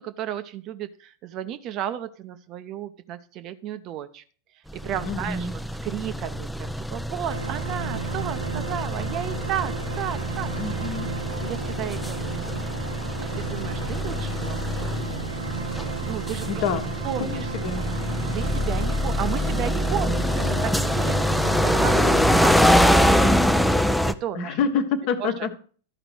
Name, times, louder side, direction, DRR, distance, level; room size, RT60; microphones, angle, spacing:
voice 1, 0.0-4.2 4.7-5.5 5.8-10.8 11.4-12.5 13.3-15.3 16.1-16.5 17.0-17.5 17.7-17.9 18.3-21.2 21.5-23.8 24.0-24.6 25.2-25.3, right 10 dB, 35° right, 10 dB, 0.7 m, -33 dB
sound 1, 4.7-24.1, equal, ahead, 0.5 m, -24 dB
voice 2, 5.0-5.5 10.5-11.1 16.5-16.9 17.2-17.8 21.9-22.3 24.3-25.5, left 6 dB, 45° left, 7 dB, 1.3 m, -27 dB
sound 2, 7.3-23.3, right 5 dB, 75° right, 0.7 m, -34 dB
13.0 x 5.0 x 6.2 m, 0.42 s
figure-of-eight pair, 90°, 0 cm